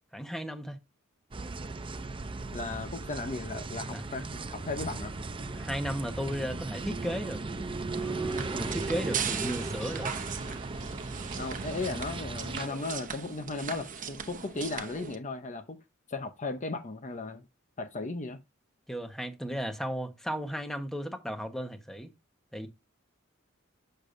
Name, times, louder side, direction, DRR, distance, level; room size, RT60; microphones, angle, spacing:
voice 1, 0.1-0.8 3.9-4.0 5.5-7.4 7.9-10.1 18.9-22.1 22.5-22.7, equal, ahead, 1.1 m, -35 dB
sound 1, 1.3-12.7, right 3 dB, 25° right, 0.5 m, -37 dB
voice 2, 2.5-5.1 11.4-15.8 16.1-17.4 17.8-18.4, left 3 dB, 35° left, 0.7 m, -36 dB
sound 2, 7.9-15.2, right 7 dB, 40° right, 1.0 m, -38 dB
7.3 x 6.7 x 2.6 m
head